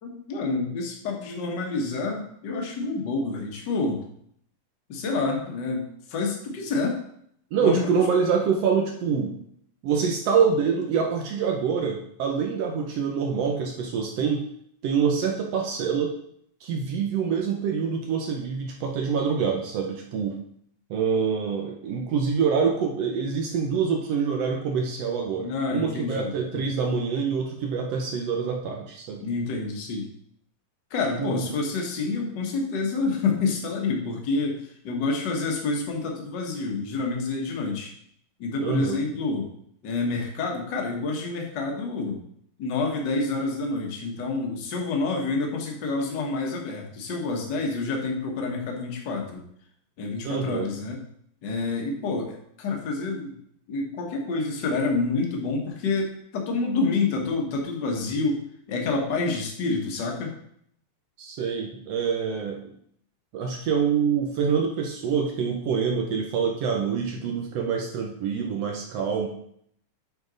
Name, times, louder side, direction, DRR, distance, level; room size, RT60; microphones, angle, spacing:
voice 1, 0.0-4.0 4.9-7.0 7.6-8.0 25.4-26.6 29.2-30.1 30.9-37.9 38.4-39.5 39.8-42.2 42.6-49.4 50.0-51.0 51.4-53.4 53.7-60.3, left 3 dB, 50° left, 1 dB, 1.4 m, -28 dB
voice 2, 7.5-9.4 9.8-14.4 14.8-16.1 16.6-20.4 20.9-29.2 31.2-31.5 38.6-39.0 50.2-50.7 61.2-62.6 63.3-69.3, right 6 dB, 70° right, 1 dB, 1.7 m, -26 dB
7.8 x 5.1 x 3.9 m, 0.68 s
omnidirectional pair, 3.4 m